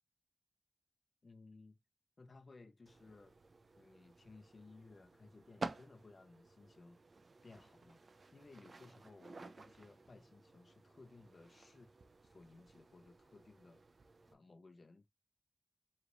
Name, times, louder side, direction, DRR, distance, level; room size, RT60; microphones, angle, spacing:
voice 1, 1.2-1.8 2.2-3.4 3.8-7.0 7.4-8.0 8.3-11.9 12.2-13.8 14.3-15.1, left 3 dB, 65° left, 0.7 m, -59 dB
sound 1, 2.9-14.3, right 3 dB, 70° right, 0.6 m, -53 dB
4.8 x 3.2 x 2.5 m
wide cardioid pair, 75°, 0 cm